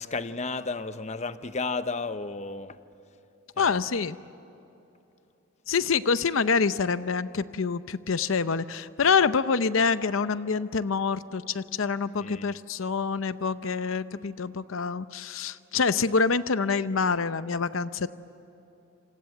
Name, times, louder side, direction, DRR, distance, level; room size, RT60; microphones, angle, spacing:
voice 1, 0.0-2.8 3.6-3.8 12.2-12.5, left 3 dB, 35° left, 11 dB, 0.9 m, -33 dB
voice 2, 3.6-4.2 5.7-18.1, left 5 dB, 85° left, 13 dB, 0.7 m, -26 dB
27.5 x 27.0 x 7.8 m, 2.9 s
head